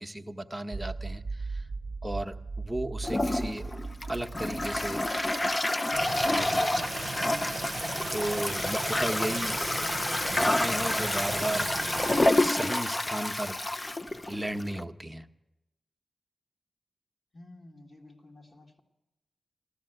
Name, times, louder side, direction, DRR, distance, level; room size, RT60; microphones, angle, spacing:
voice 1, 0.0-1.6 2.0-3.7 4.1-5.0 6.1-7.0 8.1-9.6 10.3-11.7 12.3-13.6 14.3-15.3, right 1 dB, 10° right, 5 dB, 0.9 m, -35 dB
sound 1, 0.7-5.5, right 3 dB, 45° right, 0.9 m, -38 dB
Toilet flush, 3.0-14.8, left 1 dB, 30° left, 0.6 m, -28 dB
sound 2, 5.9-12.2, right 5 dB, 80° right, 0.5 m, -38 dB
voice 2, 17.3-18.8, left 2 dB, 50° left, -1 dB, 2.0 m, -52 dB
14.0 x 13.0 x 7.9 m, 0.95 s
cardioid pair, 50°, 0 cm